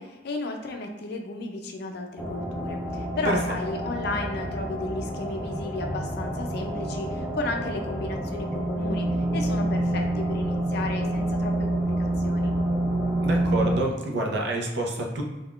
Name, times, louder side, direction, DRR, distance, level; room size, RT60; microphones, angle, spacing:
voice 1, 0.0-9.1 9.3-12.5, left 2 dB, 65° left, 3 dB, 0.4 m, -34 dB
sound 1, 2.2-13.8, right 1 dB, 5° right, 0.4 m, -28 dB
voice 2, 13.2-15.2, right 2 dB, 65° right, 1 dB, 0.5 m, -27 dB
3.5 x 2.3 x 2.3 m, 1.1 s
head